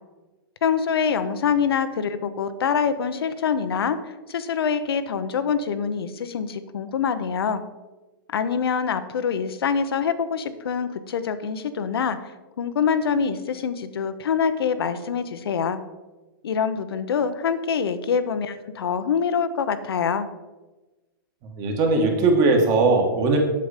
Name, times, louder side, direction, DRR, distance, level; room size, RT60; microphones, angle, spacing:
voice 1, 0.6-7.6 8.3-12.2 12.6-15.8 16.4-20.3, left 6 dB, 90° left, 11 dB, 0.8 m, -25 dB
voice 2, 21.5-23.4, right 3 dB, 25° right, 2 dB, 1.5 m, -19 dB
7.7 x 6.9 x 5.0 m, 1.1 s
hypercardioid pair, 160°, 12 cm